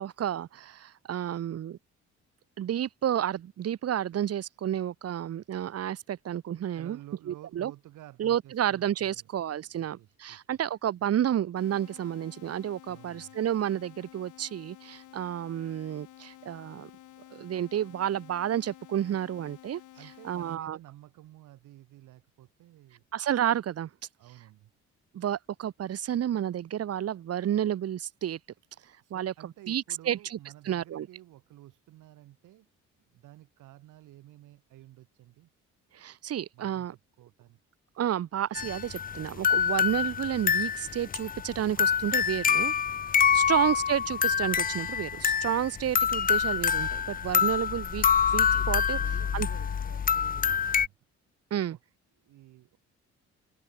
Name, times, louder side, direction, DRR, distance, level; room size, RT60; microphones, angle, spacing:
voice 1, 0.0-1.8 2.6-7.0 7.3-7.7 8.2-16.9 17.3-19.8 20.2-20.8 23.1-23.9 25.1-28.4 29.1-30.4 30.7-31.1 35.9-36.9 38.0-42.7 43.3-48.1 48.3-49.0 49.3-49.5 51.5-51.8, right 10 dB, 55° right, 1.0 m, -31 dB
voice 2, 6.7-10.6 12.9-13.4 20.0-23.0 24.2-24.7 29.0-32.7 33.1-35.5 36.5-37.6 43.2-43.5 47.4-47.9 48.4-48.6 48.9-50.9 51.7-51.8 52.2-52.8, right 15 dB, 85° right, 5.6 m, -52 dB
sound 1, 11.6-20.6, left 14 dB, 80° left, 1.5 m, -52 dB
sound 2, 38.5-50.9, left 7 dB, 30° left, 0.5 m, -26 dB
cardioid pair, 90°, 30 cm